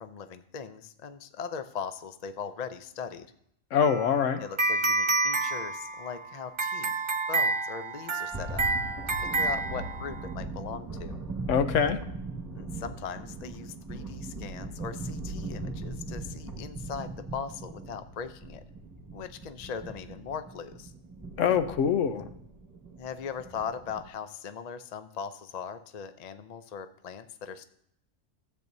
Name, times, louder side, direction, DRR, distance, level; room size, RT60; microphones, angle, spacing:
voice 1, 0.0-3.3 4.4-6.9 7.3-8.6 9.2-11.2 12.5-18.6 19.1-20.9 23.0-27.7, left 6 dB, 50° left, 10 dB, 0.5 m, -39 dB
voice 2, 3.7-4.4 11.5-12.0 21.4-22.3, left 7 dB, 70° left, 10 dB, 1.0 m, -24 dB
sound 1, 3.8-10.3, right 3 dB, 35° right, 0.5 m, -29 dB
sound 2, 8.3-24.1, right 2 dB, 15° right, 1.8 m, -39 dB
13.5 x 8.5 x 2.7 m, 0.71 s
omnidirectional pair, 1.4 m